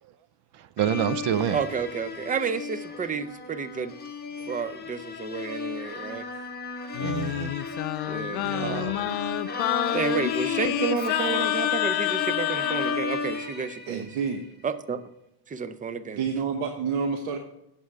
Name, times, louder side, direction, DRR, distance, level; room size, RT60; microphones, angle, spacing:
voice 1, 0.5-1.6 4.4-4.5 6.0-6.2 7.0-7.6 8.4-9.0 11.7-11.8 12.1-12.2, right 10 dB, 55° right, 0.7 m, -29 dB
sound 1, 0.8-14.5, left 4 dB, 20° left, 1.5 m, -34 dB
voice 2, 1.5-3.9 4.5-6.3 8.1-9.2 9.9-14.1 14.6-15.0 15.5-16.2, right 6 dB, 15° right, 0.5 m, -31 dB
Singing, 6.9-13.0, left 16 dB, 70° left, 0.6 m, -28 dB
voice 3, 13.9-14.4 16.1-17.4, right 6 dB, 75° right, 1.2 m, -28 dB
8.6 x 7.2 x 4.6 m
cardioid pair, 130°, 50 cm